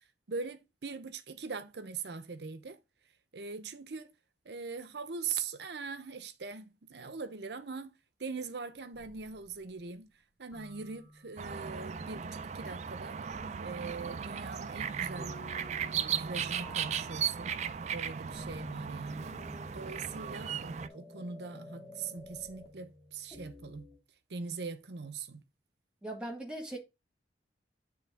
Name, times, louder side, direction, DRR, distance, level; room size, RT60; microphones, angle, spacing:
voice 1, 0.3-2.8 3.3-4.1 4.4-7.9 8.2-10.1 10.4-13.2 13.6-15.4 15.9-17.6 17.9-19.4 19.7-23.9 24.3-25.4, right 5 dB, 75° right, 0.7 m, -41 dB
sound 1, 8.9-9.7 10.5-11.6 13.3-13.9 15.2-16.3 16.6-24.0, left 1 dB, 25° left, 2.1 m, -52 dB
sound 2, 11.4-20.9, right 7 dB, 40° right, 0.4 m, -37 dB
voice 2, 26.0-26.8, right 1 dB, 5° right, 1.6 m, -39 dB
8.9 x 3.4 x 3.5 m
head